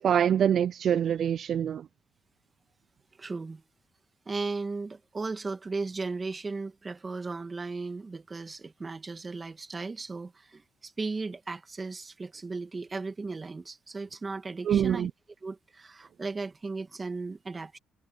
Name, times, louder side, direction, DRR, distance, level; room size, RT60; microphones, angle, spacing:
voice 1, 0.0-1.9 14.6-15.1, right 9 dB, 60° right, 0.5 m, -25 dB
voice 2, 3.2-3.6 4.3-15.1 15.4-17.8, right 3 dB, 30° right, 2.0 m, -36 dB
cardioid pair, 90°, 0 cm